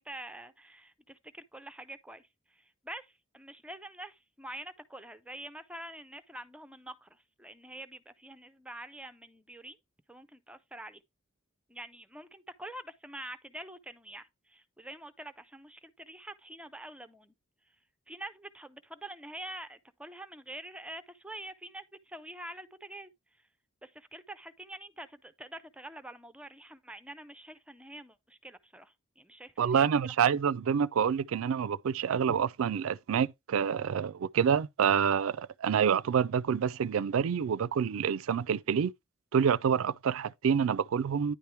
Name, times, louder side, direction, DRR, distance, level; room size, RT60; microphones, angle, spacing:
voice 1, 0.0-9.8 10.1-11.0 11.7-17.3 18.1-23.1 23.8-30.4, right 1 dB, 5° right, 0.5 m, -46 dB
voice 2, 29.6-38.9 39.3-41.3, right 7 dB, 75° right, 0.4 m, -27 dB
10.0 x 3.4 x 4.4 m
head